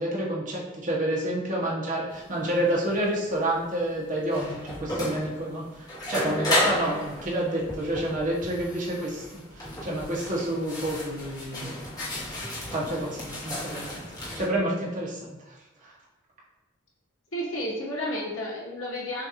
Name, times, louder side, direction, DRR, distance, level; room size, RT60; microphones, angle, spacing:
voice 1, 0.0-11.7 12.7-15.5 15.8-15.9, right 1 dB, 40° right, -4 dB, 1.1 m, -29 dB
sound 1, 2.1-14.5, left 1 dB, 20° left, 1.1 m, -33 dB
voice 2, 17.3-19.3, equal, 75° left, -4 dB, 1.3 m, -31 dB
6.2 x 2.6 x 2.9 m, 1.0 s
head